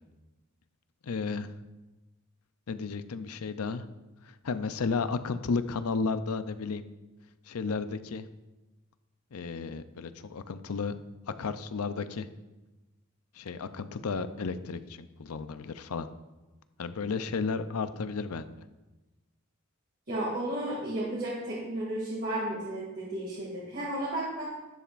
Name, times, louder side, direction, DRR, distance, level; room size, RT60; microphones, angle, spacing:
voice 1, 1.0-1.5 2.7-3.8 4.2-6.8 7.5-8.3 9.3-11.0 11.4-12.3 13.4-16.1 16.8-18.5, left 4 dB, 80° left, 11 dB, 0.5 m, -33 dB
voice 2, 20.1-24.4, right 1 dB, 45° right, -6 dB, 2.4 m, -33 dB
11.5 x 10.0 x 2.5 m, 1.1 s
head